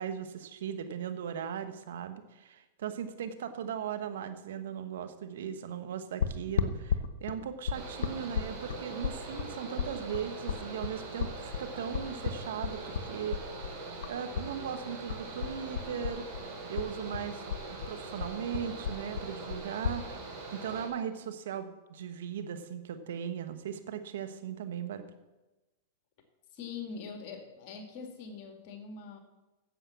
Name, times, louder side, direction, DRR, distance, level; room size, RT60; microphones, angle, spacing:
voice 1, 0.0-13.6 14.1-16.2 16.7-20.2 20.5-25.0, right 8 dB, 75° right, 10 dB, 1.2 m, -38 dB
sound 1, 6.2-14.5 14.8-16.5 16.7-20.0, left 7 dB, 75° left, 0.9 m, -34 dB
Mechanical fan, 7.7-20.9, right 3 dB, 50° right, 4.4 m, -43 dB
voice 2, 26.5-29.2, left 5 dB, 50° left, 5 dB, 2.1 m, -43 dB
10.0 x 7.5 x 7.1 m, 1.1 s
hypercardioid pair, 120°, 0 cm